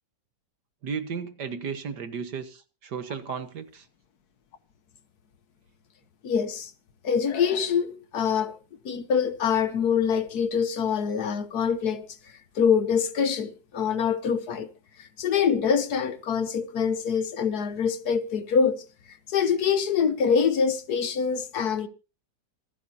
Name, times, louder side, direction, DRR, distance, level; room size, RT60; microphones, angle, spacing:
voice 1, 0.8-3.9, right 6 dB, 70° right, 2.0 m, -34 dB
voice 2, 6.2-6.7 7.0-8.6 8.8-12.1 12.5-14.7 15.0-18.8 19.3-21.9, left 6 dB, 65° left, 1.5 m, -25 dB
26.5 x 8.9 x 2.8 m
omnidirectional pair, 1.9 m